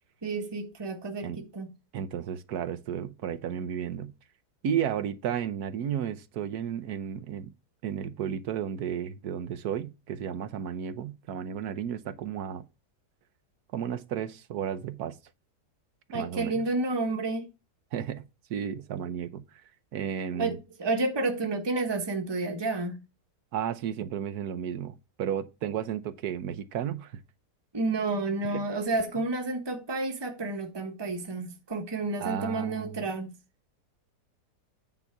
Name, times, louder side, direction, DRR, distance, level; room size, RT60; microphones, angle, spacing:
voice 1, 0.2-1.7 16.1-17.5 20.4-23.0 27.7-33.3, right 3 dB, 15° right, 1.2 m, -30 dB
voice 2, 1.9-4.1 4.6-7.5 7.8-12.7 13.7-15.2 16.1-16.7 17.9-18.2 18.5-19.4 19.9-20.6 23.5-27.1 28.5-28.6 32.2-33.0, right 9 dB, 70° right, 1.2 m, -33 dB
9.2 x 4.0 x 5.8 m
omnidirectional pair, 1.8 m